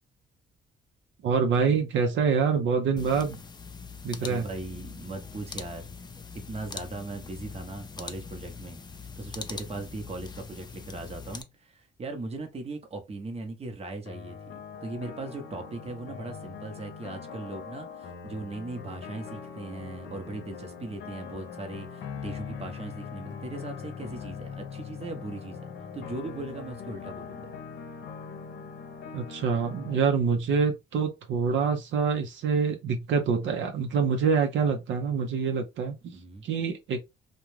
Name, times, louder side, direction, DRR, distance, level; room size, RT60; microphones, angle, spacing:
voice 1, 1.2-3.4 4.0-4.4 29.1-36.1 36.4-37.0, right 5 dB, 70° right, 0.6 m, -26 dB
sound 1, 3.0-11.4, left 5 dB, 20° left, 0.4 m, -42 dB
voice 2, 4.2-5.9 6.3-14.5 14.8-27.5 36.1-36.5, right 2 dB, 30° right, 0.8 m, -39 dB
sound 2, 14.1-30.0, left 6 dB, 70° left, 0.7 m, -41 dB
2.4 x 2.2 x 3.1 m
cardioid pair, 90°, 20 cm